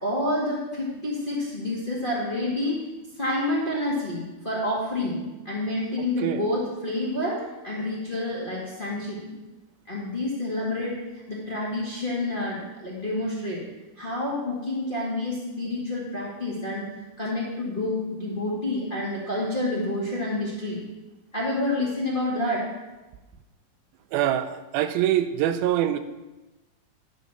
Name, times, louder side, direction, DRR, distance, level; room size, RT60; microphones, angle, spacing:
voice 1, 0.0-2.8 3.2-9.3 9.9-11.0 11.3-13.6 14.0-16.9 17.2-20.8 21.3-22.7, left 1 dB, 25° left, -5 dB, 1.1 m, -28 dB
voice 2, 24.1-26.0, right 11 dB, 85° right, 10 dB, 2.4 m, -24 dB
11.0 x 5.0 x 6.6 m, 1.1 s
omnidirectional pair, 4.1 m